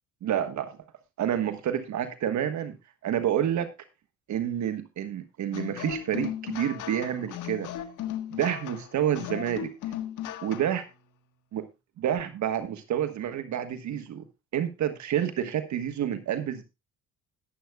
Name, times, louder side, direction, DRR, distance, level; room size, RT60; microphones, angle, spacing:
voice 1, 0.2-0.7 1.2-2.8 3.0-3.7 4.3-7.7 8.3-9.7 10.4-10.8 11.5-11.7 12.0-14.3 14.5-16.6, right 10 dB, 70° right, 9 dB, 1.3 m, -29 dB
sound 1, 5.5-10.9, left 11 dB, 85° left, 1.5 m, -37 dB
20.5 x 8.0 x 2.3 m, 0.25 s
cardioid pair, 90°, 30 cm